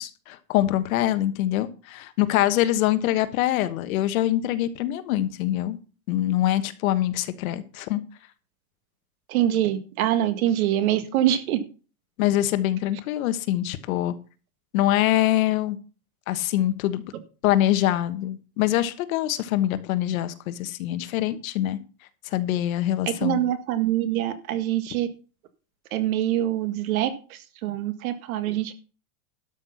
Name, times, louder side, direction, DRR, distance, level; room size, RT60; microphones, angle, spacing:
voice 1, 0.0-5.8 6.1-8.0 12.2-14.1 14.7-15.8 16.3-17.0 17.4-21.8 22.2-23.4, left 13 dB, 65° left, 1.4 m, -24 dB
voice 2, 9.3-11.6 23.1-25.1 25.9-28.7, right 12 dB, 70° right, 1.8 m, -24 dB
12.5 x 6.5 x 5.8 m
supercardioid pair, 170°, 45 cm